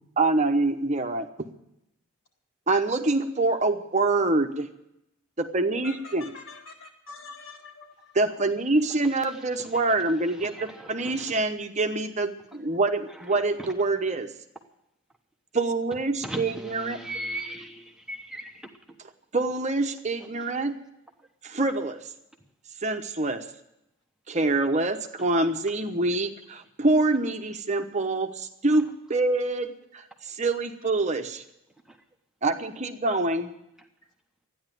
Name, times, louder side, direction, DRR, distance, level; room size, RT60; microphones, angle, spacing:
voice 1, 0.2-1.5 2.7-4.7 5.4-6.3 8.1-14.3 15.5-17.0 19.3-20.8 21.4-22.0 22.8-23.4 24.3-31.4 32.4-33.5, right 2 dB, 30° right, 6 dB, 1.0 m, -26 dB
voice 2, 5.8-8.2, left 4 dB, 70° left, 2 dB, 3.9 m, -45 dB
voice 3, 10.4-11.4 13.6-13.7 16.2-18.7 31.9-32.0, right 1 dB, 5° right, 2 dB, 1.0 m, -37 dB
14.5 x 10.0 x 9.1 m, 0.82 s
head